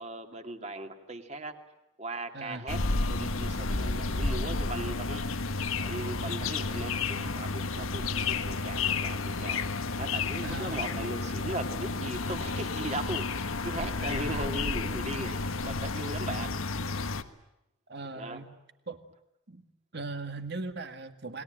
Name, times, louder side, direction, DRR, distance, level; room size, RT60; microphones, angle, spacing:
voice 1, 0.0-1.6 2.0-2.8 3.1-5.2 5.7-16.5 17.0-17.1 18.1-18.4, right 2 dB, 30° right, 6 dB, 2.5 m, -38 dB
voice 2, 2.3-2.7 8.1-8.2 10.4-10.8 14.0-14.5 17.9-18.5 18.9-19.0 19.5-19.7 19.9-21.4, right 3 dB, 50° right, 8 dB, 2.0 m, -39 dB
sound 1, 2.7-17.2, left 3 dB, 85° left, 1.5 m, -31 dB
29.0 x 21.0 x 9.0 m, 0.85 s
head